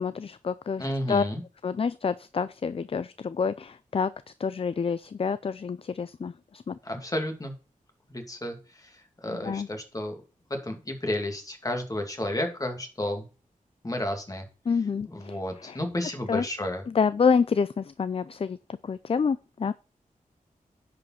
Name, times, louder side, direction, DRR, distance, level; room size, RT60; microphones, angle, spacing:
voice 1, 0.0-1.2 1.6-4.1 4.4-6.8 9.3-9.7 14.7-15.4 15.6-15.8 16.3-16.4 16.9-18.6 18.8-19.7, left 5 dB, 40° left, 0.4 m, -27 dB
voice 2, 0.8-1.4 6.8-7.5 8.1-8.9 9.2-10.1 10.5-13.2 13.8-14.5 15.1-16.8, left 1 dB, 25° left, 2.6 m, -32 dB
10.5 x 5.2 x 5.7 m
wide cardioid pair, 110°, 14 cm